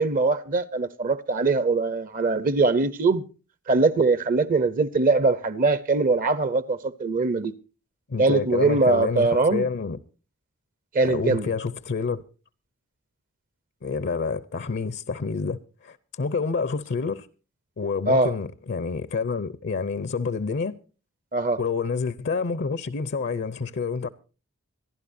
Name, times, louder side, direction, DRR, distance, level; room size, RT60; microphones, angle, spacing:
voice 1, 0.0-3.2 3.7-7.5 8.2-9.7 10.9-11.5 18.1-18.3 21.3-21.6, right 3 dB, 40° right, 0.6 m, -22 dB
voice 2, 8.1-10.0 11.0-12.2 13.8-17.3 17.8-20.7 21.6-24.1, left 4 dB, 50° left, 0.6 m, -28 dB
26.0 x 11.5 x 2.6 m
head